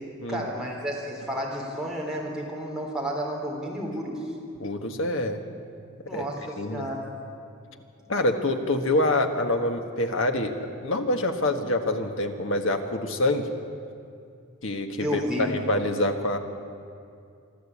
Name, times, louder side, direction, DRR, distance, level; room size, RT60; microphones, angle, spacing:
voice 1, 0.3-4.2 6.0-7.1 15.0-15.5, equal, 5° right, -3 dB, 3.6 m, -31 dB
voice 2, 4.6-5.4 6.1-6.2 6.6-6.9 8.1-10.5 10.8-13.5 14.6-16.4, left 1 dB, 60° left, 5 dB, 1.6 m, -26 dB
26.5 x 12.0 x 8.6 m, 2.5 s
head